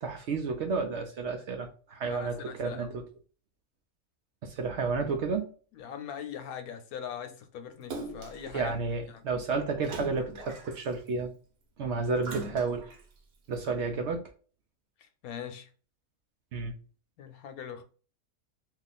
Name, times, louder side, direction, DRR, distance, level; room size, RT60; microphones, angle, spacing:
voice 1, 0.0-3.0 4.4-5.5 8.5-11.3 11.8-12.8 13.5-14.2 16.5-16.8, right 4 dB, 65° right, 0.7 m, -31 dB
voice 2, 2.0-2.9 5.7-8.8 9.1-9.3 15.0-15.7 17.2-17.8, left 8 dB, 80° left, 1.1 m, -41 dB
Splash splatter, 7.9-8.5 9.8-11.1 12.2-13.0 13.6-13.7, right 3 dB, 85° right, 1.3 m, -41 dB
2.8 x 2.4 x 4.0 m
omnidirectional pair, 1.5 m